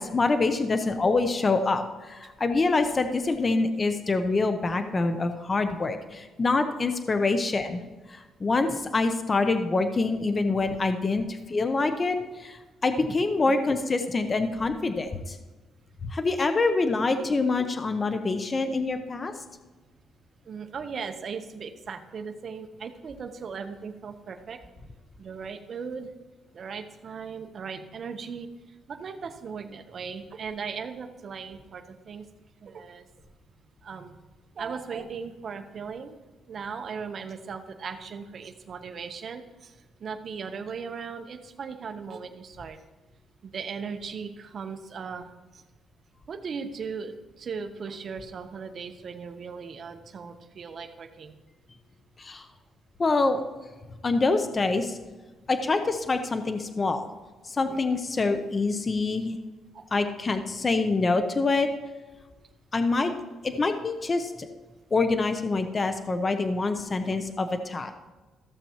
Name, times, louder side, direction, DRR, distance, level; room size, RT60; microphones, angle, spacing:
voice 1, 0.0-7.8 8.1-15.4 16.0-19.3 52.2-52.4 53.0-53.4 54.0-55.0 55.5-57.1 57.5-59.4 59.9-61.7 62.7-63.1 63.4-64.5 64.9-67.9, left 3 dB, 30° left, 8 dB, 0.7 m, -26 dB
voice 2, 20.5-24.6 25.2-26.1 26.5-28.5 28.9-32.2 32.6-33.0 33.8-34.2 34.6-36.2 36.5-39.7 40.0-42.8 43.4-45.2 46.3-51.3 59.7-59.8, right 5 dB, 50° right, 6 dB, 0.9 m, -37 dB
15.0 x 6.9 x 3.0 m, 1.2 s
cardioid pair, 125°, 0 cm